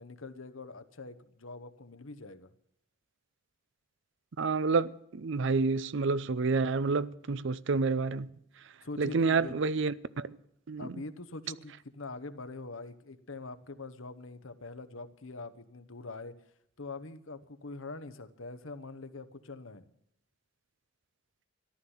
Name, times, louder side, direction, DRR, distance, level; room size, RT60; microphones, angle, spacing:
voice 1, 0.0-2.5 8.8-9.5 10.8-16.4 16.8-19.9, left 3 dB, 70° left, 1.1 m, -44 dB
voice 2, 4.4-8.3 9.0-10.4 10.7-10.9, right 4 dB, 60° right, 0.5 m, -29 dB
14.5 x 11.5 x 7.2 m
head